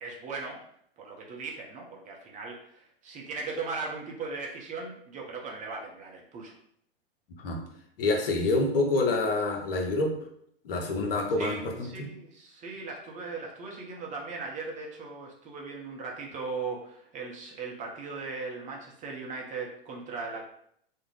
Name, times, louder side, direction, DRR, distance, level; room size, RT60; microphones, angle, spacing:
voice 1, 0.0-0.6 1.0-6.5 11.4-20.4, right 4 dB, 25° right, -1 dB, 0.6 m, -38 dB
voice 2, 8.0-10.1 10.6-11.6 12.0-12.1, left 2 dB, 65° left, 2 dB, 0.7 m, -26 dB
2.4 x 2.1 x 3.2 m, 0.67 s
figure-of-eight pair, 95°, 31 cm